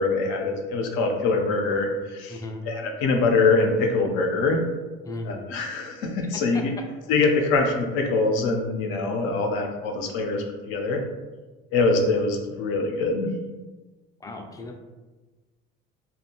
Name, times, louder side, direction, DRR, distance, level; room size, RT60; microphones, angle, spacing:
voice 1, 0.0-4.7 5.2-6.7 7.1-11.0 11.7-13.3, left 3 dB, 80° left, 3 dB, 0.5 m, -24 dB
voice 2, 2.3-2.7 5.1-5.5 6.3-6.8 14.2-14.8, left 2 dB, 15° left, 3 dB, 0.3 m, -36 dB
2.5 x 2.2 x 2.8 m, 1.2 s
supercardioid pair, 110°, 20 cm